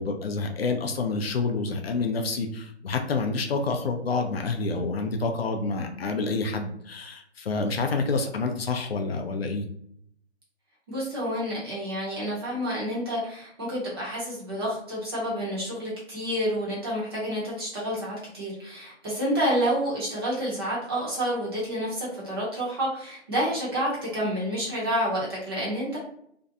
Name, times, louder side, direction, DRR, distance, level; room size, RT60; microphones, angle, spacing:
voice 1, 0.0-9.7, left 3 dB, 60° left, 4 dB, 0.5 m, -28 dB
voice 2, 10.9-26.0, equal, 20° right, -6 dB, 0.7 m, -29 dB
2.6 x 2.1 x 2.5 m, 0.69 s
figure-of-eight pair, 150°, 35 cm